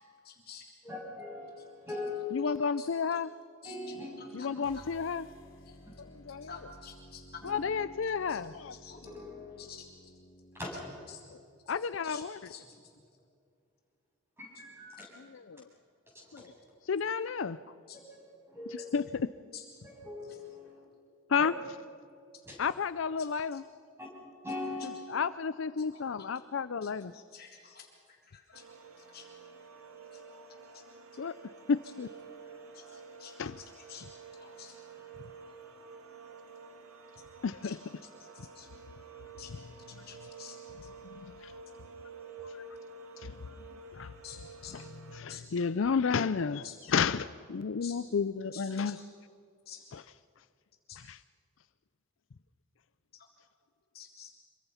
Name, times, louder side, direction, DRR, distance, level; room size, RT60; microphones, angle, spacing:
voice 1, 0.2-0.7 2.4-3.2 3.6-4.5 4.7-4.9 5.7-5.8 6.4-7.4 8.3-8.4 8.7-9.0 9.6-9.9 11.1-11.2 11.7-13.0 17.9-18.0 18.8-18.9 19.5-19.6 20.2-20.4 23.2-23.6 24.8-24.9 25.9-26.3 26.8-28.7 29.0-29.3 30.1-30.2 30.7-30.8 31.1-31.2 32.7-34.1 34.3-34.8 37.6-37.8 38.2-38.7 39.4-39.5 39.9-40.9 44.2-44.8 45.3-45.4 46.6-46.8 47.8-48.0 48.5-49.0 49.7-49.8 50.9-51.0 53.1-53.3 53.9-54.3, left 7 dB, 50° left, 3.5 m, -50 dB
voice 2, 0.8-2.6 3.6-4.6 7.4-7.7 9.1-9.6 10.5-10.7 14.4-15.1 16.1-16.5 18.5-18.9 19.8-20.8 21.4-21.6 22.4-22.6 24.0-24.1 24.4-25.0, left 3 dB, 10° right, 7.9 m, -41 dB
voice 3, 2.3-3.3 4.3-5.2 6.0-6.5 7.4-8.7 11.7-12.4 15.2-15.7 16.3-16.5 16.9-17.6 18.7-19.3 21.3-21.5 22.6-23.6 25.1-27.1 31.2-31.3 31.7-32.1 33.4-33.6 37.4-37.8 41.1-41.5 42.4-42.5 43.2-43.4 43.9-44.1 44.7-44.8 45.1-49.0 49.9-50.0 51.1-51.2, left 5 dB, 70° left, 0.5 m, -32 dB
sound 1, 4.6-10.9, equal, 90° left, 3.3 m, -55 dB
sound 2, 28.5-45.2, right 4 dB, 85° right, 1.9 m, -50 dB
26.5 x 23.5 x 5.7 m
head